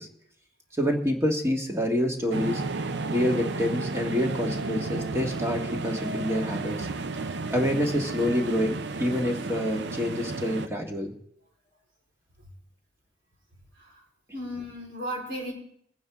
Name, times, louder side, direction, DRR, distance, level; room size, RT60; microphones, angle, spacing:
voice 1, 0.8-2.6 3.1-6.9 7.5-11.1, equal, 15° right, 2 dB, 1.7 m, -27 dB
sound 1, 2.3-10.7, right 3 dB, 65° right, 0.6 m, -32 dB
voice 2, 14.3-15.5, equal, 85° right, -3 dB, 4.2 m, -35 dB
22.5 x 9.4 x 3.6 m, 0.68 s
head